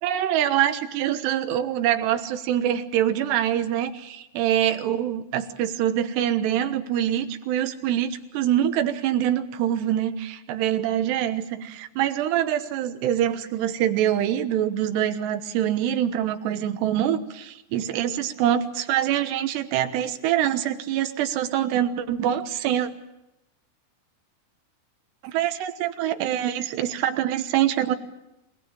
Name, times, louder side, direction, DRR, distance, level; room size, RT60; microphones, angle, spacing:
voice 1, 0.0-22.9 25.2-28.0, right 11 dB, 85° right, 9 dB, 3.3 m, -25 dB
26.0 x 19.0 x 8.7 m, 0.89 s
omnidirectional pair, 4.7 m